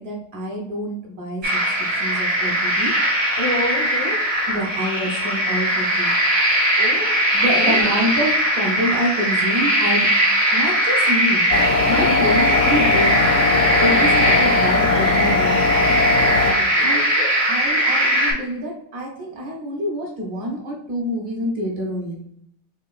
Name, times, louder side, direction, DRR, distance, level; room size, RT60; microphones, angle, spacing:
voice 1, 0.0-1.6 2.0-2.9 4.5-6.1 7.3-10.2 10.5-11.4 11.9-13.2 13.8-15.6 16.8-17.0 17.4-22.2, equal, 50° right, -1 dB, 1.3 m, -26 dB
sound 1, 1.4-18.3, right 1 dB, 75° right, 2.8 m, -20 dB
voice 2, 3.4-4.2 6.8-7.3 7.6-7.9 11.9-12.3 16.5-17.4, left 2 dB, 20° left, -2 dB, 0.4 m, -29 dB
sound 2, 11.5-16.5, left 4 dB, 75° left, 1.0 m, -19 dB
5.9 x 3.0 x 2.4 m, 0.70 s
omnidirectional pair, 2.3 m